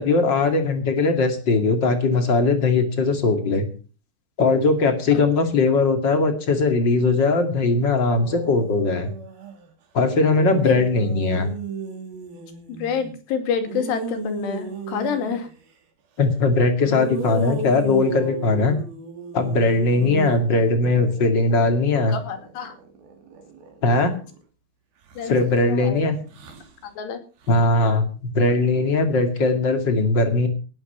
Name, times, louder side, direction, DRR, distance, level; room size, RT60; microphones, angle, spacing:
voice 1, 0.0-3.7 4.4-9.1 9.9-11.5 16.2-18.8 19.3-22.2 23.8-24.1 25.3-26.2 27.5-30.5, left 3 dB, 35° left, 7 dB, 2.2 m, -20 dB
sound 1, 8.2-9.7 10.2-13.2 13.7-15.5 16.8-24.4 25.1-25.6 26.2-26.7 27.4-27.6, right 4 dB, 65° right, 4.5 m, -35 dB
voice 2, 12.7-15.5 22.1-22.7 25.2-25.3 25.7-26.0 26.8-27.2, left 7 dB, 80° left, 7 dB, 4.5 m, -27 dB
18.5 x 8.9 x 5.7 m, 0.37 s
omnidirectional pair, 4.9 m